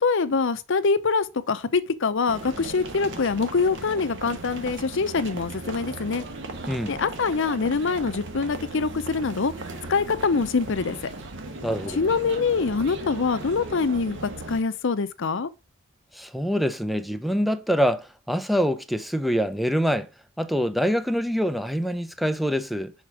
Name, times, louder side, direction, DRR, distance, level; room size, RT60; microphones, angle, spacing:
voice 1, 0.0-6.2 6.9-9.5 9.9-11.0 12.0-15.5, left 4 dB, 65° left, 0.6 m, -24 dB
sound 1, 2.3-14.6, right 2 dB, 60° right, 1.2 m, -37 dB
voice 2, 11.6-12.0 16.1-20.1 20.4-22.9, equal, ahead, 0.5 m, -25 dB
6.6 x 4.4 x 4.8 m
head